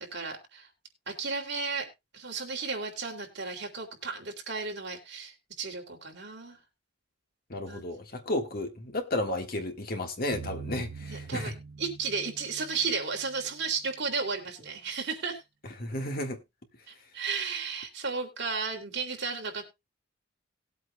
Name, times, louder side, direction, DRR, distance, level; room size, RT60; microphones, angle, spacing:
voice 1, 0.1-0.7 1.1-1.9 2.1-6.6 7.7-7.9 11.0-11.5 11.8-15.4 17.1-19.6, right 4 dB, 55° right, 2.8 m, -34 dB
voice 2, 7.5-11.5 15.8-16.4, left 1 dB, 45° left, 1.6 m, -33 dB
sound 1, 10.3-13.4, right 5 dB, 90° right, 0.6 m, -43 dB
19.5 x 8.2 x 2.3 m
head